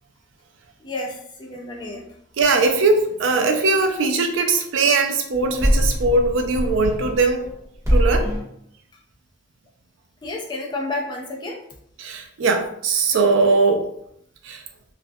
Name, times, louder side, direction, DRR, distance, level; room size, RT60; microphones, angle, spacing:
voice 1, 0.8-2.0 10.2-11.6, left 2 dB, 25° left, -1 dB, 0.4 m, -30 dB
voice 2, 2.4-7.5 7.9-8.3 12.0-13.9 14.4-14.6, right 3 dB, 90° right, 5 dB, 0.4 m, -20 dB
sound 1, 5.3-7.5 7.8-8.5, equal, 15° right, 0.9 m, -22 dB
2.4 x 2.1 x 2.6 m, 0.71 s
head